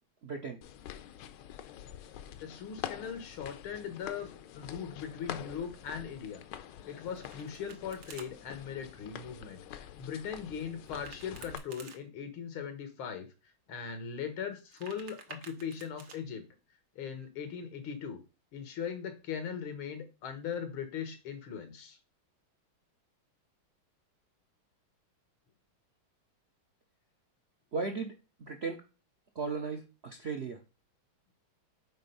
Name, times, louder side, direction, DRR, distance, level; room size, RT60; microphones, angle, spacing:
voice 1, 0.2-0.6 27.7-28.1 28.4-28.8 29.4-30.6, right 4 dB, 65° right, 3 dB, 0.6 m, -36 dB
sound 1, 0.6-11.6, left 11 dB, 70° left, 1.2 m, -46 dB
voice 2, 2.4-6.4 6.9-9.6 10.0-13.3 13.7-16.4 17.0-18.2 18.5-22.0, left 7 dB, 90° left, 8 dB, 2.1 m, -39 dB
Domestic sounds home sounds, 6.9-8.3 10.8-12.0 14.5-16.2, right 5 dB, 80° right, 1.9 m, -51 dB
6.1 x 4.3 x 5.4 m, 0.31 s
omnidirectional pair, 2.2 m